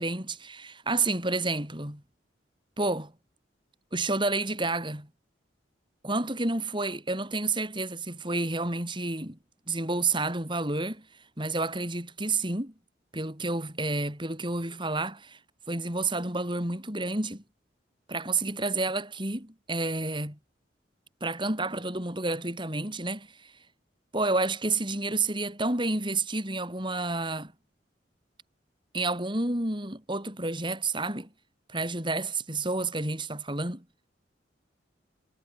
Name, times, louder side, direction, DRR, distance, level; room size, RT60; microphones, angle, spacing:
voice 1, 0.0-2.0 2.8-3.1 3.9-5.1 6.0-9.4 9.7-11.0 11.4-12.7 13.1-15.4 15.7-17.4 18.1-20.4 21.2-23.5 24.1-27.5 28.9-31.3 31.7-33.8, right 2 dB, 25° right, 7.1 m, -30 dB
head